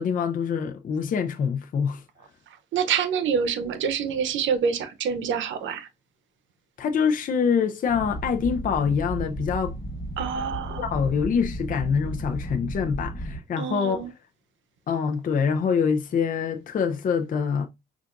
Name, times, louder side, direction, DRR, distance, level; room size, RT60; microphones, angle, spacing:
voice 1, 0.0-2.0 6.8-9.8 10.8-14.1 14.9-17.7, left 6 dB, 45° left, 0.5 m, -25 dB
voice 2, 2.7-5.9 10.2-10.9 13.6-14.1, right 7 dB, 75° right, 0.7 m, -26 dB
sound 1, 7.9-13.4, right 1 dB, 25° left, 1.5 m, -34 dB
5.6 x 2.5 x 2.5 m
cardioid pair, 90°, 20 cm